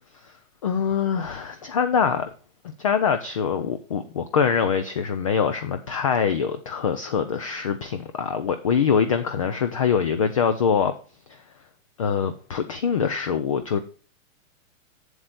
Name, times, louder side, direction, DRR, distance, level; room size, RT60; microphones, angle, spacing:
voice 1, 0.6-2.3 2.6-10.9 11.3-11.4 12.0-13.8, left 7 dB, 25° left, 0.4 m, -24 dB
7.9 x 7.6 x 3.9 m
hypercardioid pair, 165°, 39 cm